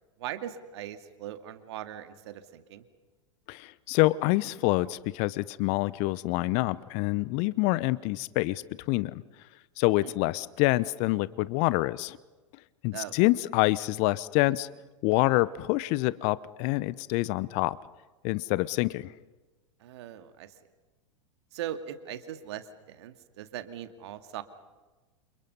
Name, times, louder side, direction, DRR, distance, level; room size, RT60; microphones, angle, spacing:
voice 1, 0.2-2.8 10.0-10.1 12.9-13.2 19.8-20.5 21.5-24.4, right 11 dB, 60° right, 9 dB, 2.2 m, -40 dB
voice 2, 3.5-9.2 9.8-12.2 12.8-14.7 15.0-17.8 18.2-19.1, left 20 dB, 45° left, 19 dB, 0.8 m, -26 dB
29.0 x 28.5 x 5.5 m, 1.2 s
figure-of-eight pair, 95°, 16 cm